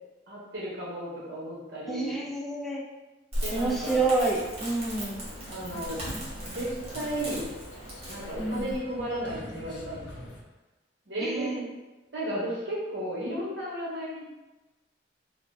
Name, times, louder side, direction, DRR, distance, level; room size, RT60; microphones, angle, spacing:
voice 1, 0.3-2.2 3.4-4.0 5.5-6.0 6.4-6.7 6.9-7.4 8.1-10.0 11.1-11.7 12.1-14.3, right 1 dB, 75° right, -6 dB, 1.4 m, -34 dB
voice 2, 1.9-2.8 3.5-5.3 8.4-8.8 11.2-11.6, right 3 dB, ahead, -2 dB, 0.4 m, -28 dB
Crackle, 3.3-8.8, equal, 35° right, 1.1 m, -37 dB
sound 1, 4.9-10.4, left 1 dB, 80° left, 0.7 m, -45 dB
3.3 x 2.2 x 4.0 m, 1.1 s
head